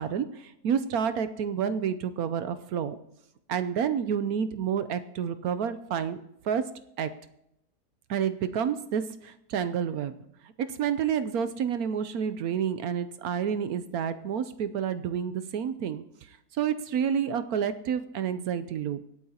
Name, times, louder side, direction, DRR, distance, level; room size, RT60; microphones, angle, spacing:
voice 1, 0.0-3.0 3.5-6.2 6.4-7.1 8.1-10.1 10.4-16.0 16.5-19.0, right 8 dB, 70° right, 12 dB, 1.0 m, -29 dB
25.0 x 8.6 x 2.8 m, 0.81 s
omnidirectional pair, 1.8 m